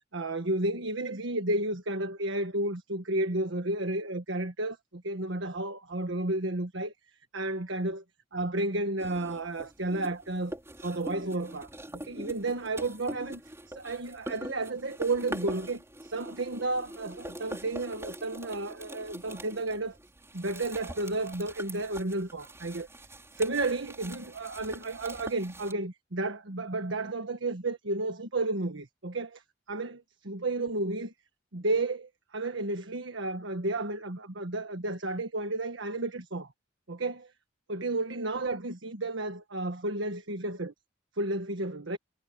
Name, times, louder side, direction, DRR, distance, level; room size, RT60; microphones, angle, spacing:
voice 1, 0.1-6.9 7.3-8.0 8.3-10.5 10.8-11.7 12.0-13.4 13.7-19.9 20.3-22.9 23.4-29.4 29.7-31.1 31.5-36.5 36.9-37.3 37.7-40.7 41.2-42.0, right 2 dB, 80° right, 1.5 m, -32 dB
sound 1, 9.0-25.7, right 1 dB, 15° right, 4.6 m, -43 dB
head